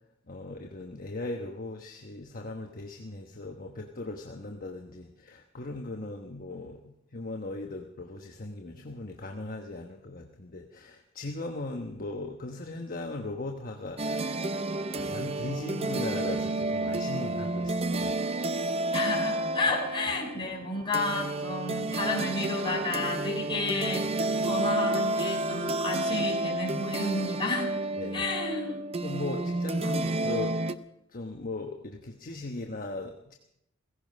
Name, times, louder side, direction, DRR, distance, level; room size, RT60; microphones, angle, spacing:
voice 1, 0.3-14.4 14.9-18.2 28.0-28.2 29.0-30.6 31.1-33.3, left 2 dB, 45° left, 3 dB, 1.1 m, -38 dB
sound 1, 14.0-30.7, right 2 dB, 30° right, 0.6 m, -30 dB
voice 2, 18.9-27.7 28.1-28.8 29.8-30.0, left 2 dB, 25° left, 1 dB, 3.7 m, -31 dB
16.5 x 16.0 x 5.3 m, 0.79 s
head